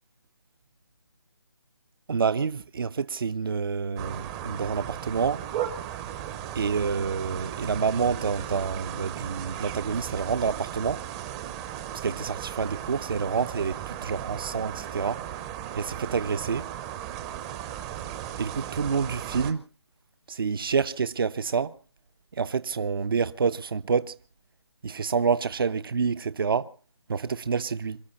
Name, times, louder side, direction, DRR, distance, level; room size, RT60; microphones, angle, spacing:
voice 1, 2.1-5.4 6.5-11.0 12.0-15.2 15.8-16.7 18.4-19.7 20.3-21.8 22.3-24.1 24.8-26.7 27.1-28.0, right 5 dB, 55° right, 0.8 m, -28 dB
sound 1, 4.0-19.5, right 11 dB, 15° right, 0.7 m, -36 dB
27.5 x 12.5 x 4.1 m
figure-of-eight pair, 165°, 14 cm